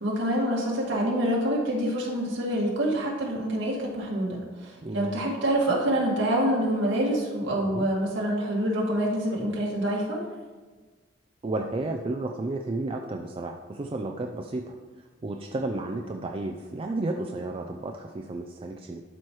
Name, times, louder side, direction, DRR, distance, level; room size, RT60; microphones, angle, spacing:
voice 1, 0.0-10.2, right 1 dB, 75° right, -3 dB, 1.9 m, -26 dB
voice 2, 4.8-5.3 7.6-7.9 11.4-19.0, right 2 dB, 30° right, 2 dB, 0.4 m, -32 dB
12.0 x 4.7 x 3.1 m, 1.4 s
head